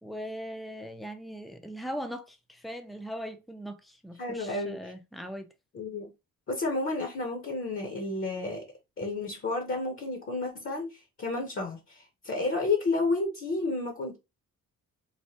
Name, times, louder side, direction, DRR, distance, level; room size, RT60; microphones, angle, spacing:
voice 1, 0.0-5.5, equal, ahead, 0.4 m, -40 dB
voice 2, 4.2-4.8 5.7-6.1 6.5-8.6 9.0-14.2, left 3 dB, 40° left, 0.7 m, -31 dB
3.2 x 2.1 x 2.7 m
cardioid pair, 95°, 33 cm